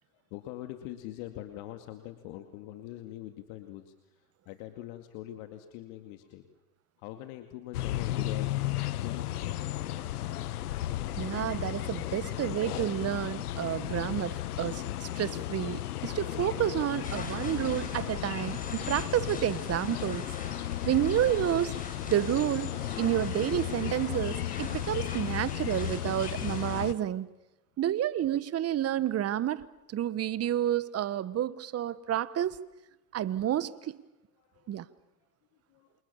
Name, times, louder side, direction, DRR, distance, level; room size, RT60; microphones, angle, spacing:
voice 1, 0.1-6.4 7.0-8.5 9.0-9.7 15.1-15.2 34.4-34.8 35.7-35.9, left 14 dB, 60° left, 7 dB, 2.4 m, -43 dB
sound 1, 7.7-26.9, left 13 dB, 80° left, 1.4 m, -34 dB
voice 2, 11.2-20.3 20.8-21.7 22.1-27.3 27.8-32.6 33.1-34.0 34.7-34.8, right 11 dB, 35° right, 16 dB, 1.3 m, -30 dB
sound 2, 17.0-26.8, left 3 dB, 20° left, 6.4 m, -44 dB
28.5 x 26.5 x 7.2 m, 1.0 s
hypercardioid pair, 95°, 44 cm